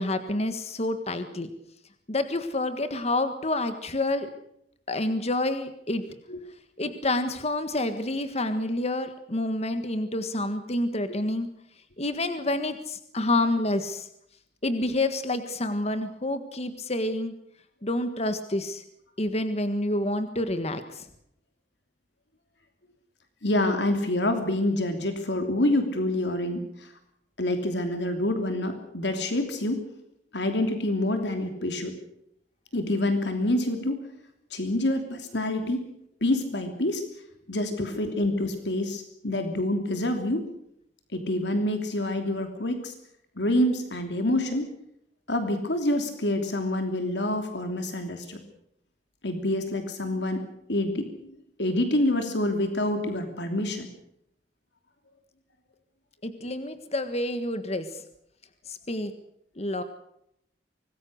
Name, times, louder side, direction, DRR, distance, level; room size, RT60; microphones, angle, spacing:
voice 1, 0.0-1.5 2.1-4.3 4.9-6.0 6.8-11.5 12.0-14.1 14.6-17.3 17.8-18.8 19.2-21.1 56.2-58.0 58.7-59.1 59.6-59.8, left 1 dB, 40° left, 9 dB, 1.6 m, -28 dB
voice 2, 23.4-26.9 27.4-29.8 30.3-31.9 32.7-34.0 34.5-35.9 36.2-37.0 37.5-40.4 41.1-42.9 43.4-44.7 45.3-48.4 49.2-53.9, left 1 dB, 80° left, 6 dB, 3.0 m, -27 dB
25.0 x 20.0 x 6.5 m, 0.76 s
head